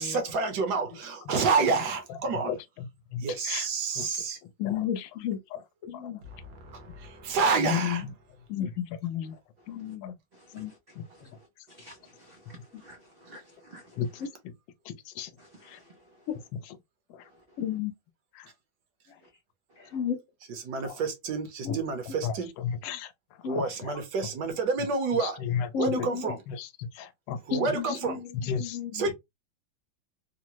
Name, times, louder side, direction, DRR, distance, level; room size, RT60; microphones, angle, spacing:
voice 1, 0.0-2.6 3.2-4.4 6.5-8.0 20.6-22.5 23.4-25.4 25.8-26.4 27.5-28.2 28.9-29.1, right 4 dB, 70° right, 1.3 m, -29 dB
voice 2, 3.1-3.7 4.0-4.1 4.6-4.8 5.9-6.1 10.0-10.1 14.0-14.1 15.2-15.3 15.7-15.8 20.8-20.9 21.7-21.8 22.2-23.1 23.5-23.9 25.2-25.7 26.5-27.4 28.4-28.8, left 7 dB, 85° left, 1.3 m, -33 dB
voice 3, 4.6-5.4 5.8-6.2 7.6-8.1 8.5-9.4 9.7-10.2 10.5-10.7 14.2-14.3 16.3-16.4 17.6-17.9 19.8-20.2 21.6-21.8 23.4-23.6 25.7-26.4 27.5-28.3 28.6-29.1, left 9 dB, 70° left, 0.8 m, -32 dB
voice 4, 10.3-11.3 11.7-14.3 15.4-16.0, right 1 dB, 85° right, 0.5 m, -53 dB
3.6 x 2.0 x 2.8 m
omnidirectional pair, 2.0 m